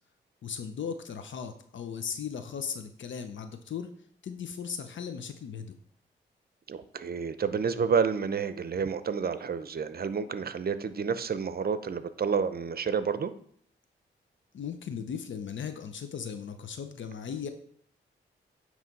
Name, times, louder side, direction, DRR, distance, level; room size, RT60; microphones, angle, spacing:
voice 1, 0.4-3.9 4.2-5.8 14.5-17.5, left 7 dB, 70° left, 8 dB, 0.7 m, -37 dB
voice 2, 6.7-13.3, right 6 dB, 50° right, 13 dB, 0.7 m, -29 dB
9.2 x 3.2 x 5.3 m, 0.64 s
cardioid pair, 50°, 20 cm